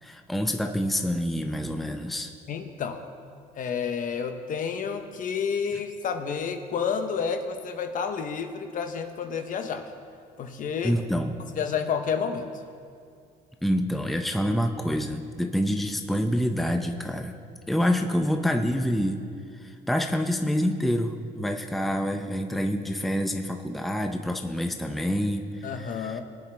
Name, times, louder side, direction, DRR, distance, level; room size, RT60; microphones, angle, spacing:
voice 1, 0.0-2.3 10.8-11.4 13.6-17.3 17.7-19.2 19.6-26.2, equal, ahead, 5 dB, 0.6 m, -27 dB
voice 2, 2.5-3.0 3.6-9.9 10.4-11.0 11.6-12.5 25.6-26.2, left 6 dB, 50° left, 7 dB, 1.0 m, -30 dB
21.0 x 8.9 x 3.5 m, 2.3 s
cardioid pair, 110°, 17 cm